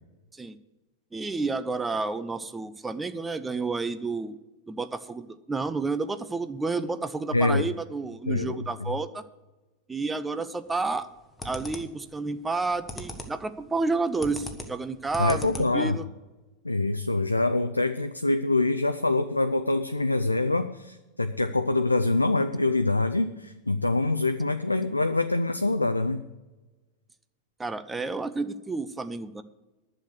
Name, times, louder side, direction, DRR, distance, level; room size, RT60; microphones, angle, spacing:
voice 1, 1.1-4.4 4.7-9.2 9.9-11.1 11.4-16.1 27.6-29.4, right 3 dB, 10° right, 12 dB, 0.6 m, -30 dB
voice 2, 7.3-7.7 8.3-8.6 15.2-16.0 16.6-26.2, left 2 dB, 85° left, 8 dB, 0.5 m, -25 dB
sound 1, 10.7-11.0 11.4-12.1 12.5-13.5 13.7-16.0, left 1 dB, 10° left, 1.4 m, -39 dB
11.5 x 6.4 x 8.2 m, 1.1 s
figure-of-eight pair, 90°, 0 cm